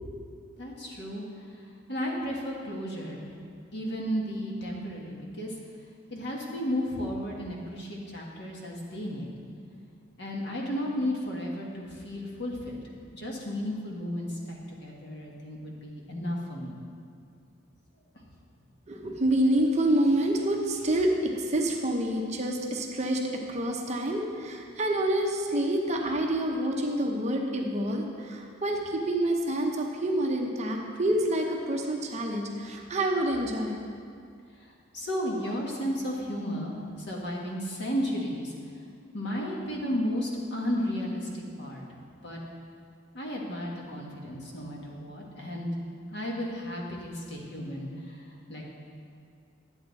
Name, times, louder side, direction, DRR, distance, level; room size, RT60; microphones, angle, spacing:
voice 1, 0.6-1.2 1.9-3.2 3.7-5.5 6.1-9.3 10.2-12.8 13.1-16.8 34.9-38.5 39.1-41.8 42.2-42.4 43.1-45.7 46.1-48.6, equal, 55° left, -2 dB, 1.5 m, -33 dB
voice 2, 18.9-33.8, right 1 dB, 35° right, 1 dB, 0.8 m, -27 dB
10.5 x 8.0 x 4.0 m, 2.3 s
head